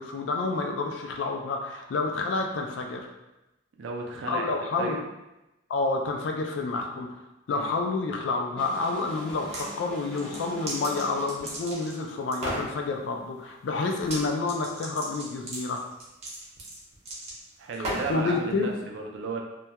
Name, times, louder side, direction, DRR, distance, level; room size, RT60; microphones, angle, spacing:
voice 1, 0.0-3.1 4.3-5.0 5.7-7.1 7.5-15.8 18.1-18.7, left 3 dB, 70° left, 2 dB, 0.3 m, -29 dB
voice 2, 3.8-4.5 4.8-5.0 7.5-7.7 17.6-19.4, right 3 dB, 70° right, 1 dB, 0.4 m, -34 dB
sound 1, 8.6-11.7, left 1 dB, 5° left, 0.5 m, -42 dB
sound 2, 9.3-9.7 10.1-12.0 12.3-12.7 14.0-14.2 14.5-18.2, right 1 dB, 35° right, 0.7 m, -36 dB
2.2 x 2.2 x 2.8 m, 0.96 s
head